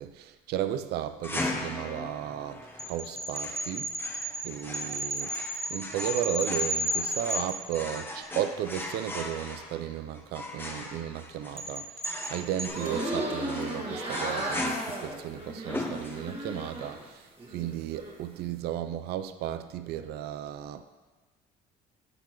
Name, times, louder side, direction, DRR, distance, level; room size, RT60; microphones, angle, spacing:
voice 1, 0.0-3.9 4.4-5.3 5.7-11.9 12.3-17.2 17.5-20.8, right 11 dB, 75° right, 0.4 m, -34 dB
sound 1, 1.2-16.6, left 2 dB, 15° left, 0.9 m, -39 dB
sound 2, 2.8-8.2 11.6-12.7, equal, 15° right, 0.9 m, -33 dB
sound 3, 12.6-17.1 17.4-18.2, right 1 dB, 30° right, 1.6 m, -35 dB
10.5 x 5.9 x 3.0 m
cardioid pair, 110°, 17 cm